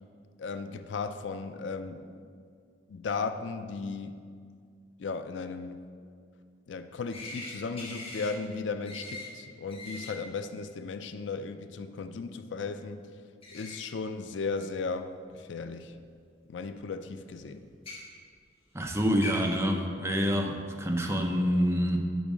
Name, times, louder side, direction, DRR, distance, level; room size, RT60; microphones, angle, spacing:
voice 1, 0.4-2.2 2.9-4.2 5.0-5.8 6.7-13.0 13.5-15.9 16.5-17.6, left 4 dB, 75° left, 10 dB, 0.4 m, -36 dB
sound 1, 7.1-7.5 7.8-8.3 8.9-9.3 9.7-10.1 13.4-13.8 14.6-14.7 15.9-16.0 17.7-18.0 18.9-19.0 19.2-19.6, left 2 dB, 30° left, 1.5 m, -40 dB
voice 2, 18.7-22.0, equal, 15° right, 2 dB, 0.7 m, -27 dB
7.0 x 5.3 x 6.1 m, 2.1 s
head